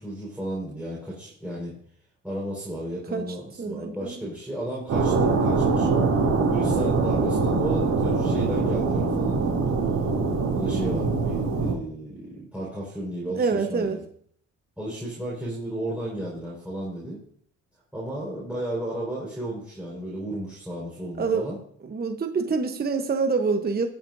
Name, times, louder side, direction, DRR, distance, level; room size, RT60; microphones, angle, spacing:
voice 1, 0.0-1.7 2.2-5.9 6.5-9.8 10.5-14.0 14.8-17.2 17.9-21.6, right 1 dB, 5° right, -7 dB, 4.6 m, -33 dB
voice 2, 3.6-4.1 13.3-14.0 21.2-21.5 21.8-23.9, right 4 dB, 30° right, 6 dB, 0.9 m, -26 dB
sound 1, 4.9-11.7, right 4 dB, 70° right, 2.9 m, -23 dB
18.0 x 7.6 x 2.6 m, 0.62 s
cardioid pair, 90°, 30 cm